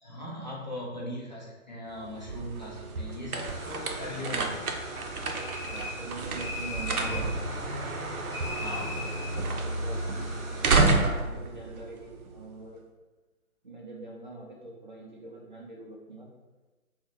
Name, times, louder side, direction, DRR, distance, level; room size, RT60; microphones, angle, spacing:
voice 1, 0.0-4.6 7.0-7.3 8.6-9.0, left 1 dB, 35° left, -5 dB, 0.4 m, -39 dB
sound 1, 1.9-12.7, right 3 dB, 85° right, 0.5 m, -30 dB
sound 2, 3.4-10.8, right 1 dB, 55° right, 0.8 m, -43 dB
sound 3, 5.2-6.1 6.4-7.3 8.3-9.4, left 3 dB, 85° left, 0.7 m, -38 dB
voice 2, 5.3-7.4 8.8-9.1 9.4-10.7 11.2-12.8 13.6-16.3, right 2 dB, 35° right, -4 dB, 0.4 m, -44 dB
3.8 x 2.1 x 2.9 m, 1.2 s
figure-of-eight pair, 145°, 43 cm